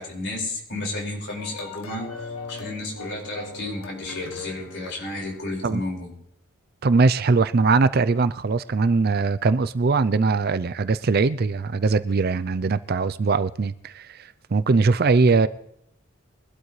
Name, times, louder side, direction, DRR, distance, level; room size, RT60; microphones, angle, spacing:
voice 1, 0.0-6.1, left 2 dB, 55° left, 5.2 m, -32 dB
sound 1, 1.3-5.7, left 4 dB, 75° left, 1.7 m, -39 dB
voice 2, 6.8-15.5, right 4 dB, 45° right, 0.4 m, -21 dB
23.0 x 12.0 x 3.2 m
head